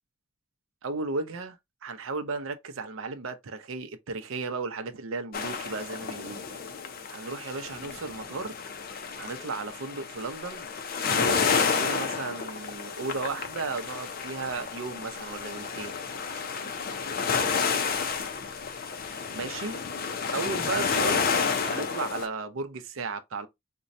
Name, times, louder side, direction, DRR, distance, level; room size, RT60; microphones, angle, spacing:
voice 1, 0.8-1.6 1.8-6.5 7.1-8.5 9.2-10.7 11.0-16.0 19.3-19.8 20.3-21.3 21.6-23.5, right 3 dB, 80° right, 0.6 m, -35 dB
sound 1, 5.3-22.3, left 5 dB, 45° left, 0.5 m, -30 dB
4.1 x 2.2 x 2.5 m
head